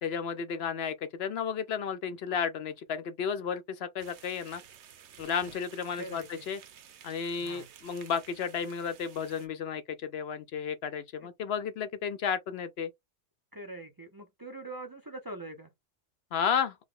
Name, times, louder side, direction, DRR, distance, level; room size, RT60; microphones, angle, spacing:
voice 1, 0.0-4.6 5.2-6.6 7.0-12.9 16.3-16.8, left 7 dB, 65° left, 0.8 m, -33 dB
sound 1, 4.0-9.5, right 8 dB, 70° right, 1.0 m, -53 dB
voice 2, 5.9-6.5 7.4-7.7 11.2-11.3 13.5-15.7, right 2 dB, 25° right, 0.6 m, -43 dB
4.7 x 2.1 x 3.6 m
omnidirectional pair, 1.2 m